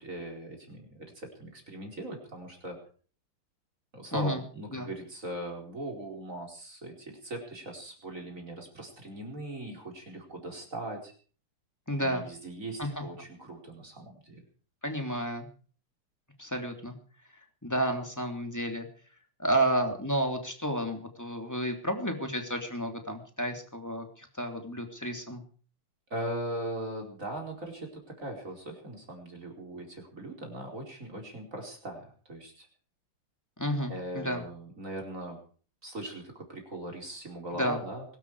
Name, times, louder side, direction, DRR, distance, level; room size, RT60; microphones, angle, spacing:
voice 1, 0.0-2.8 3.9-11.1 12.0-14.4 26.1-32.7 33.9-35.4 35.8-38.0, right 1 dB, 35° right, 1 dB, 4.8 m, -40 dB
voice 2, 4.1-4.4 4.7-4.9 11.9-12.2 12.8-13.0 14.8-15.5 16.4-16.9 17.3-18.9 19.4-25.4 33.6-34.4 37.5-37.8, right 1 dB, 10° left, 4 dB, 2.9 m, -31 dB
23.0 x 12.5 x 4.9 m, 0.43 s
omnidirectional pair, 2.4 m